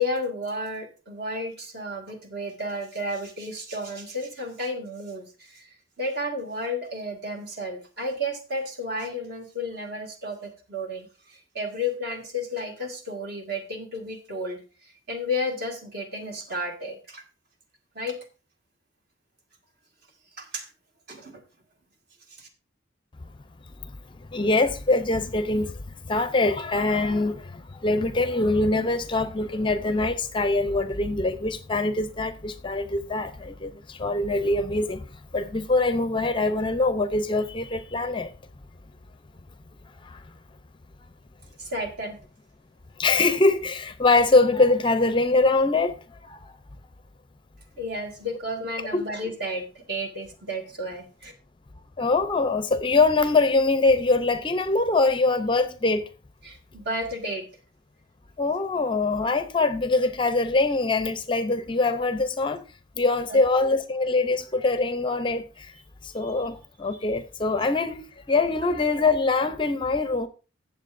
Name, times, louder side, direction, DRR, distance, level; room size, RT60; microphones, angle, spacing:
voice 1, 0.0-17.2 18.0-18.2 20.4-20.7 21.1-21.4 22.4-22.5 41.6-42.2 47.8-51.3 56.4-57.5 63.3-63.4 66.2-66.3, left 1 dB, 50° right, 1.9 m, -32 dB
voice 2, 24.3-25.8 26.1-35.1 35.3-38.3 40.0-40.2 43.0-46.0 46.2-46.5 48.9-49.0 52.0-56.1 58.4-62.6 63.0-65.7 66.0-70.3, left 3 dB, 25° left, 0.5 m, -23 dB
16.0 x 7.2 x 2.6 m
head